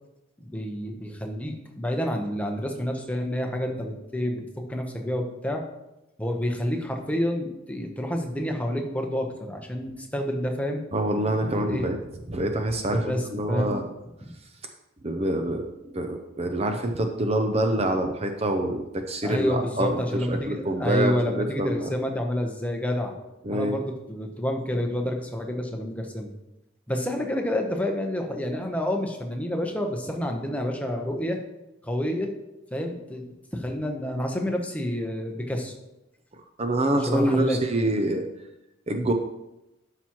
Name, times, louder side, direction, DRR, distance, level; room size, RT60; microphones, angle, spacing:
voice 1, 0.4-4.4 4.7-5.6 6.2-10.8 11.5-11.9 12.9-13.8 19.2-23.1 23.5-26.3 26.9-31.4 31.8-32.3 32.7-33.2 33.5-35.7 37.1-37.6, left 1 dB, 5° left, 2 dB, 0.9 m, -28 dB
voice 2, 10.9-12.0 12.3-13.8 15.0-15.7 15.9-21.9 23.4-23.8 36.6-38.2 38.9-39.1, right 1 dB, 30° right, 5 dB, 0.6 m, -26 dB
12.0 x 5.8 x 3.0 m, 0.93 s
head